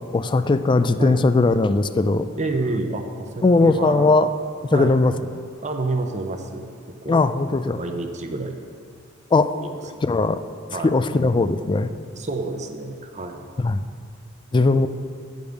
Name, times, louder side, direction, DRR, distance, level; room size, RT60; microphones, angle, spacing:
voice 1, 0.1-2.3 3.4-4.3 4.6-5.1 7.1-7.8 9.3-9.5 10.0-10.4 10.8-11.9 13.6-13.8 14.5-14.9, left 3 dB, 25° left, 12 dB, 0.3 m, -19 dB
voice 2, 2.4-4.1 4.7-5.0 5.6-6.7 7.0-7.2 7.8-8.6 9.6-10.0 10.7-10.9 12.1-13.5 14.7-14.8, right 3 dB, 35° right, 5 dB, 0.7 m, -29 dB
8.7 x 5.3 x 7.9 m, 2.1 s
head